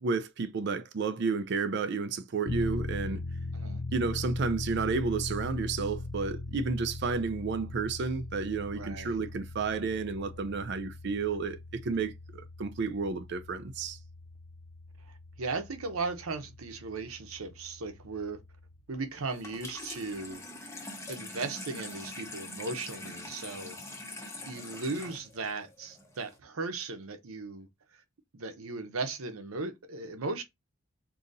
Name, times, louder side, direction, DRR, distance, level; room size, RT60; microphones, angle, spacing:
voice 1, 0.0-3.2 3.9-14.0, right 4 dB, 55° right, 0.4 m, -31 dB
sound 1, 2.5-18.8, left 2 dB, 80° left, 0.5 m, -40 dB
voice 2, 8.7-9.2 15.1-18.4 18.9-20.4 21.1-23.8 24.5-27.7 28.3-30.4, right 3 dB, 90° right, 0.8 m, -37 dB
Water tap faucet / Sink (filling or washing), 19.3-26.4, left 2 dB, 15° left, 0.7 m, -44 dB
3.9 x 2.7 x 2.6 m
head